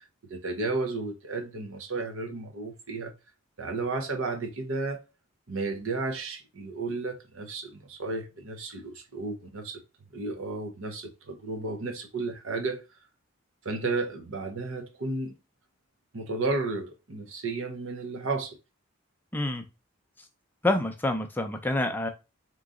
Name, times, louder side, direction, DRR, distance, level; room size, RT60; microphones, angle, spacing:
voice 1, 0.0-3.1 3.6-5.1 5.5-9.8 10.1-13.0 13.6-15.3 16.1-18.6, right 3 dB, 65° right, 0.8 m, -33 dB
voice 2, 19.3-19.6 20.6-22.1, left 2 dB, 10° left, 0.4 m, -27 dB
3.8 x 3.0 x 3.7 m
head